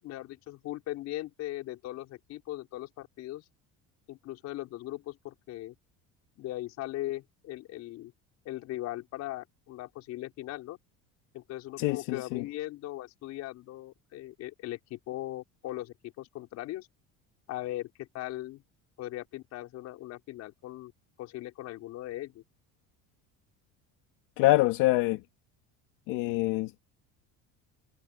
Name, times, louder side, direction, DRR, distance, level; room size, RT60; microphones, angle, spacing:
voice 1, 0.0-3.4 4.1-5.8 6.4-8.1 8.5-10.8 11.3-16.9 17.5-18.6 19.0-20.9 21.2-22.4, left 15 dB, 55° left, 5.2 m, -39 dB
voice 2, 11.8-12.4 24.4-25.2 26.1-26.8, left 18 dB, 75° left, 2.3 m, -25 dB
cardioid pair, 170°, 32 cm